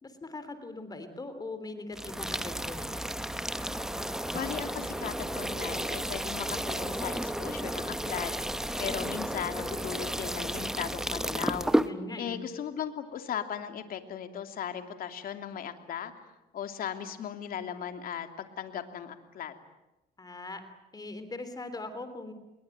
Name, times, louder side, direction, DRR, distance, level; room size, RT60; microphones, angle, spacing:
voice 1, 0.0-2.9 11.8-12.4 20.2-20.6 20.9-22.3, left 2 dB, 25° left, 10 dB, 3.3 m, -40 dB
sound 1, 1.9-11.9, right 1 dB, 5° right, 1.1 m, -32 dB
voice 2, 4.3-8.3 8.8-11.7 12.2-16.1 16.5-19.5, left 9 dB, 60° left, 7 dB, 2.9 m, -37 dB
28.0 x 22.0 x 9.1 m, 0.96 s
cardioid pair, 110°, 17 cm